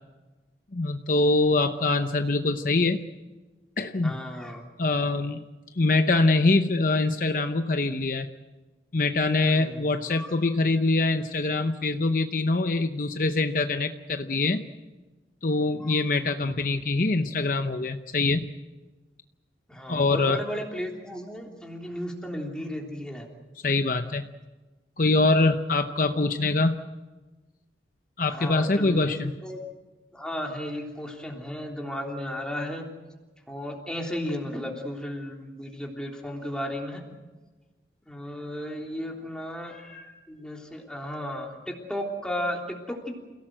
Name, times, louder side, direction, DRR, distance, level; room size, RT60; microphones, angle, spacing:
voice 1, 0.7-3.0 3.8-4.2 4.8-5.4 5.8-8.3 8.9-14.6 15.4-18.5 19.9-20.4 23.6-24.2 25.0-26.8 28.2-29.3, left 3 dB, 50° left, 7 dB, 0.8 m, -24 dB
voice 2, 4.0-4.6 9.5-9.8 10.1-10.3 15.8-15.9 19.7-23.3 28.3-29.6 30.1-32.9 33.5-37.0 38.1-43.2, equal, 5° left, 0 dB, 3.3 m, -34 dB
28.5 x 17.5 x 7.8 m, 1.2 s
head